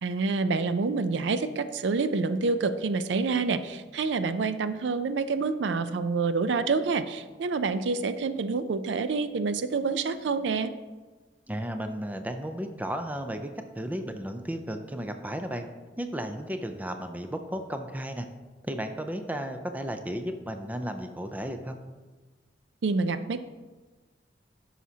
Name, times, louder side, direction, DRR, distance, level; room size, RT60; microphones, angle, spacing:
voice 1, 0.0-10.7 22.8-23.4, right 4 dB, 75° right, 12 dB, 0.4 m, -27 dB
voice 2, 11.5-15.6 16.0-18.3 18.7-21.8, equal, 10° right, 6 dB, 0.5 m, -34 dB
11.0 x 5.7 x 2.8 m, 1.3 s
head